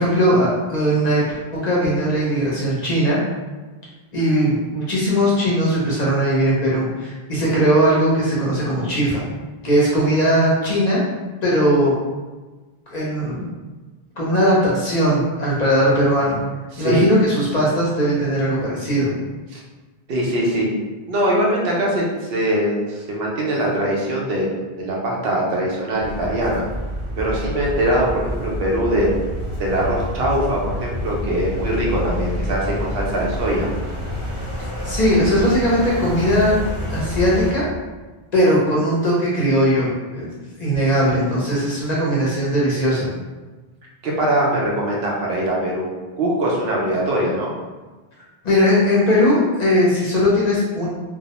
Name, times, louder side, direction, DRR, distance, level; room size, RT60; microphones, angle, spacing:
voice 1, 0.0-1.4 1.6-3.2 4.1-9.2 9.6-11.0 11.4-11.9 12.9-13.5 14.2-16.4 16.8-19.1 34.8-36.6 36.9-37.7 38.3-40.3 40.6-43.1 48.4-50.9, equal, 50° left, -6 dB, 0.7 m, -19 dB
voice 2, 16.7-17.1 19.5-19.6 20.1-20.7 21.1-26.6 27.2-29.2 29.6-33.7 44.0-45.9 46.2-47.5, right 1 dB, 75° right, -3 dB, 0.8 m, -22 dB
sound 1, 26.0-37.5, equal, 20° right, 0.5 m, -28 dB
2.2 x 2.0 x 2.8 m, 1.3 s
omnidirectional pair, 1.0 m